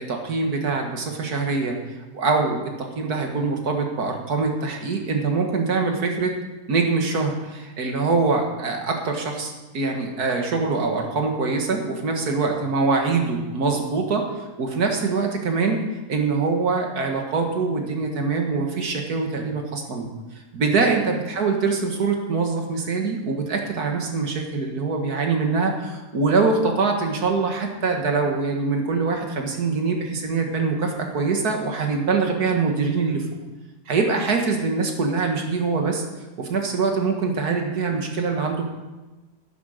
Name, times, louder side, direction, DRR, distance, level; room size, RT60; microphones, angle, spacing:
voice 1, 0.0-1.8 2.1-6.3 6.7-20.1 20.5-33.2 33.9-36.0 36.4-38.6, right 4 dB, 65° right, 2 dB, 2.1 m, -24 dB
11.0 x 9.7 x 6.6 m, 1.1 s
omnidirectional pair, 1.8 m